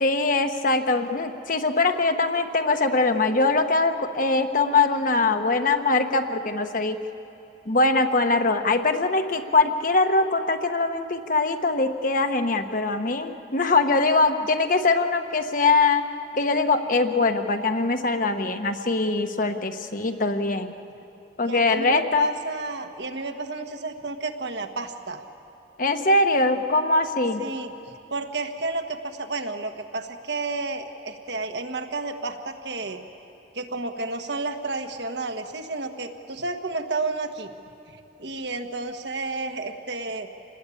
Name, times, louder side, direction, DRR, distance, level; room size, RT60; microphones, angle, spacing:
voice 1, 0.0-7.0 7.7-16.0 16.4-20.7 21.4-22.3 25.8-27.5, left 3 dB, 45° left, 7 dB, 1.1 m, -22 dB
voice 2, 21.4-25.2 27.4-27.7 28.1-33.0 33.5-37.5 37.9-40.3, right 3 dB, 65° right, 6 dB, 1.5 m, -31 dB
28.0 x 20.0 x 8.6 m, 2.9 s
head